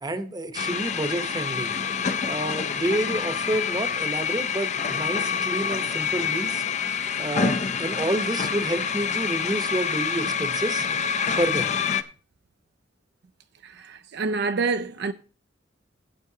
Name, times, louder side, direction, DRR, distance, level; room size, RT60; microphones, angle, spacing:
voice 1, 0.0-1.7 2.2-6.6 7.2-10.9 11.4-11.7, right 1 dB, 20° right, 0.9 m, -29 dB
sound 1, 0.5-12.0, left 6 dB, 40° left, 0.5 m, -27 dB
voice 2, 13.6-15.1, right 4 dB, 60° right, 0.5 m, -27 dB
16.0 x 8.0 x 2.8 m
head